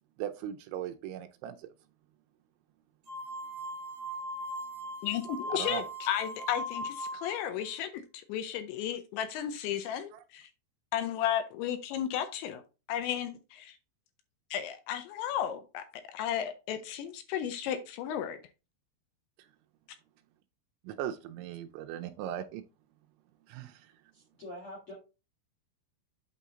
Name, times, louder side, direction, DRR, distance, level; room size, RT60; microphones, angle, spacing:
voice 1, 0.2-1.7 5.5-5.8 20.8-22.6 23.5-23.9, right 11 dB, 85° right, 2.8 m, -38 dB
sound 1, 3.1-7.4, equal, 55° right, 1.8 m, -39 dB
voice 2, 5.0-10.5 10.9-12.6 12.9-13.8 14.5-18.4, left 10 dB, 80° left, 2.8 m, -34 dB
voice 3, 24.1-24.9, left 1 dB, 55° left, 1.6 m, -45 dB
8.3 x 4.1 x 3.7 m
omnidirectional pair, 5.6 m